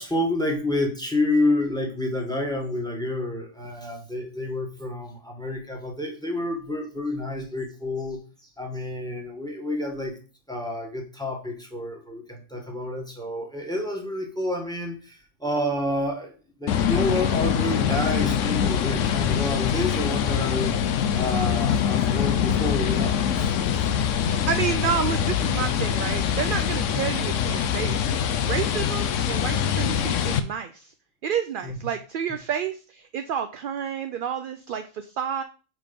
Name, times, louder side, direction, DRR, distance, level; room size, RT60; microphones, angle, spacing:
voice 1, 0.0-8.2 8.6-10.2 10.5-16.3 16.6-20.7 21.1-23.9 26.9-27.0 31.6-31.8, left 1 dB, 5° left, 2 dB, 1.4 m, -29 dB
sound 1, 16.7-30.4, left 8 dB, 85° left, 1.0 m, -24 dB
voice 2, 24.2-28.0 28.5-30.9 31.2-35.4, right 8 dB, 60° right, 8 dB, 0.5 m, -30 dB
5.0 x 4.6 x 5.2 m, 0.36 s
omnidirectional pair, 1.3 m